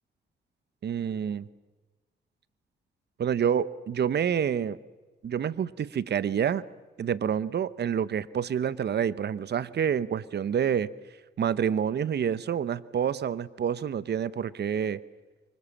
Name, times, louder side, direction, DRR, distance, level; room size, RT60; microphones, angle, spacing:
voice 1, 0.8-1.5 3.2-4.8 5.2-6.6 7.0-10.9 11.4-15.0, right 8 dB, 55° right, 16 dB, 1.0 m, -28 dB
26.0 x 24.5 x 7.4 m, 1.2 s
cardioid pair, 65°, 21 cm